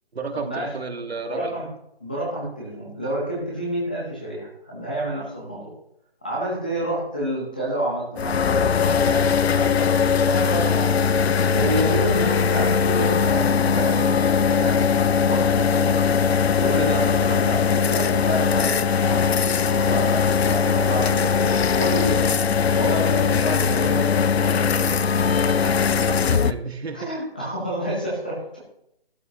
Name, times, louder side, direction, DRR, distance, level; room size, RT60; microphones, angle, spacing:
voice 1, 0.1-1.6 6.8-6.9 25.9-27.1, right 4 dB, 85° right, 5 dB, 1.8 m, -32 dB
voice 2, 1.3-1.7 2.0-5.7 6.2-14.8 15.2-16.0 16.6-24.9 25.3-25.7 26.9-28.6, right 1 dB, 10° left, -4 dB, 0.8 m, -29 dB
sound 1, 8.2-26.5, left 6 dB, 85° left, 0.7 m, -20 dB
12.0 x 12.0 x 2.9 m, 0.79 s
hypercardioid pair, 175°, 31 cm